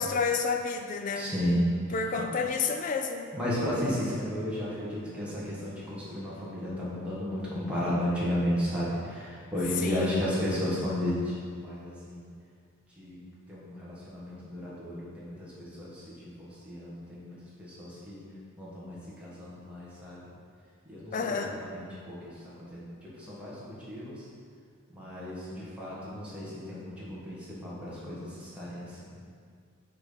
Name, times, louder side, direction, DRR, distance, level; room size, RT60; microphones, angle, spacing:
voice 1, 0.0-1.3 1.9-3.3 9.8-10.4 21.1-21.6, left 5 dB, 35° left, 5 dB, 0.3 m, -30 dB
voice 2, 1.1-1.6 3.3-12.2 13.0-13.2 13.5-18.2 18.6-20.2 20.9-22.3 22.7-24.2 24.9-29.1, left 1 dB, 5° right, -9 dB, 1.5 m, -33 dB
6.0 x 4.2 x 5.0 m, 2.1 s
head